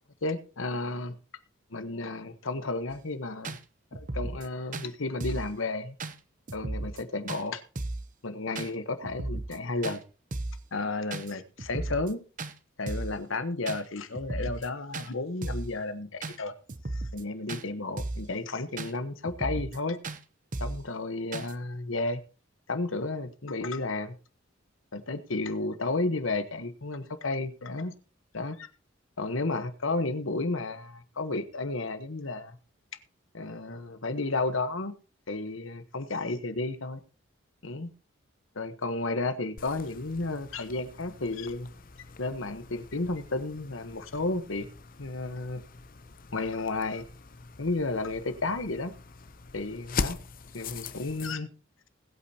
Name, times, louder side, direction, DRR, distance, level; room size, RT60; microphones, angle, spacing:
voice 1, 0.2-1.1 1.7-3.6 3.9-6.0 6.5-7.6 8.2-10.0 10.7-12.2 12.8-16.5 16.9-20.0 20.6-22.2 22.7-24.1 24.9-27.9 28.3-28.7 29.2-32.6 33.3-34.9 35.3-37.0 37.6-37.9 38.5-41.7 42.2-44.7 45.0-45.6 46.3-47.0 47.6-48.9 49.5-50.2 50.5-51.5, left 2 dB, 80° left, 10 dB, 1.2 m, -32 dB
sound 1, 2.9-3.0 3.4-3.6 3.9-4.5 4.7-4.9 5.2-5.5 6.0-6.2 6.5-7.0 7.3-7.4 7.8-8.1 8.6-8.7 9.0-9.6 9.8-10.0 10.3-10.6 11.1-11.3 11.6-12.1 12.4-12.5 12.9-13.2 13.7-13.8 14.1-14.7 14.9-15.1 15.4-15.7 16.2-16.4 16.7-17.2 17.5-17.6 18.0-18.3 18.8-18.9 19.2-19.8 20.0-20.2 20.5-20.8 21.3-21.5, right 2 dB, 40° right, 0.8 m, -35 dB
sound 2, 39.6-51.3, left 4 dB, 45° left, 0.7 m, -41 dB
20.5 x 8.7 x 2.9 m, 0.35 s
head